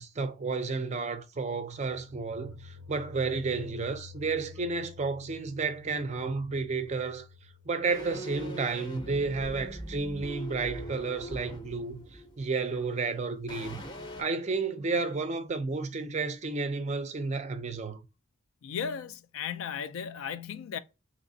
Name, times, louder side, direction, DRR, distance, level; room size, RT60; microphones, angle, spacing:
voice 1, 0.0-7.3 7.7-13.8 14.2-18.0, right 4 dB, 30° right, 0.4 m, -32 dB
sound 1, 1.8-10.6, left 5 dB, 85° right, 0.5 m, -51 dB
sound 2, 7.9-13.1 13.5-14.2, equal, 20° left, 0.6 m, -42 dB
voice 2, 18.6-20.8, left 7 dB, 70° left, 0.4 m, -36 dB
3.3 x 2.9 x 2.6 m
head